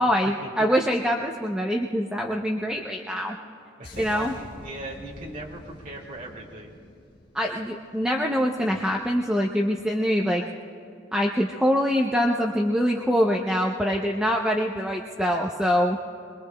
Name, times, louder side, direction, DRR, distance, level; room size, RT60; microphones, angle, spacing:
voice 1, 0.0-3.3 4.0-4.3 7.3-10.4 11.1-16.0, equal, 5° right, 0 dB, 0.6 m, -24 dB
sound 1, 3.8-8.4 8.7-8.9, left 1 dB, 60° left, 1.4 m, -46 dB
voice 2, 3.8-6.7, right 1 dB, 45° right, -3 dB, 2.2 m, -39 dB
24.5 x 22.0 x 2.3 m, 2.6 s
head